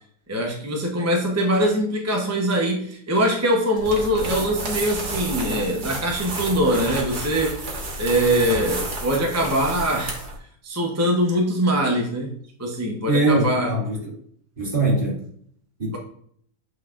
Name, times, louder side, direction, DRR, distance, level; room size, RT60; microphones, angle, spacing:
voice 1, 0.3-10.2 10.6-12.3 12.6-13.7, equal, 15° right, -1 dB, 0.5 m, -23 dB
sound 1, 3.8-10.4, right 2 dB, 75° right, 1.9 m, -31 dB
voice 2, 13.1-14.1 14.6-15.2 15.8-16.0, right 2 dB, 35° right, -5 dB, 2.9 m, -22 dB
8.4 x 4.7 x 2.5 m, 0.63 s
omnidirectional pair, 1.7 m